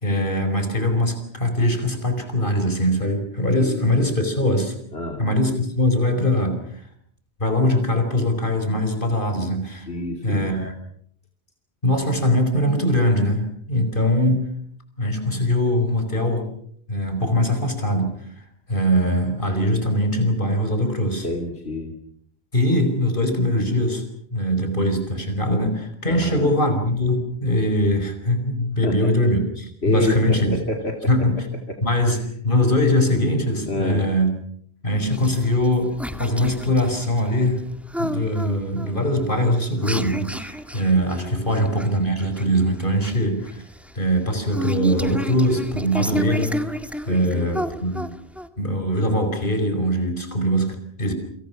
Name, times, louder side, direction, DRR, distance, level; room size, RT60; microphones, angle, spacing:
voice 1, 0.0-4.7 5.2-6.8 7.4-9.9 10.2-10.7 11.8-14.5 15.0-16.5 16.9-18.2 18.7-21.3 22.5-24.0 24.3-30.6 31.1-31.5 31.8-34.3 34.8-37.6 38.0-43.6 44.0-46.6 47.1-48.0 48.6-51.1, equal, 55° left, 7 dB, 5.2 m, -22 dB
voice 2, 3.4-3.9 4.9-5.2 9.9-10.5 21.2-21.9 26.0-26.5 28.8-29.1 29.8-31.0 33.7-34.1 40.9-41.5 47.1-47.7, left 2 dB, 75° left, 2 dB, 3.1 m, -28 dB
sound 1, 35.1-48.5, equal, ahead, 1.6 m, -32 dB
29.0 x 26.5 x 5.9 m, 0.64 s
omnidirectional pair, 1.1 m